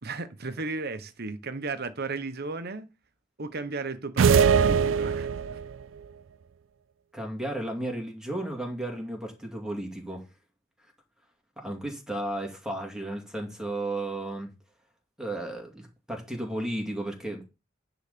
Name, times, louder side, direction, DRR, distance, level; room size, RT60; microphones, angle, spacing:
voice 1, 0.0-2.9 3.4-5.3, right 3 dB, 55° right, 1.0 m, -35 dB
sound 1, 4.2-5.7, right 6 dB, 80° right, 0.4 m, -21 dB
voice 2, 7.1-10.2 11.6-14.5 15.2-17.5, right 1 dB, 5° right, 2.4 m, -34 dB
10.0 x 4.0 x 6.8 m
head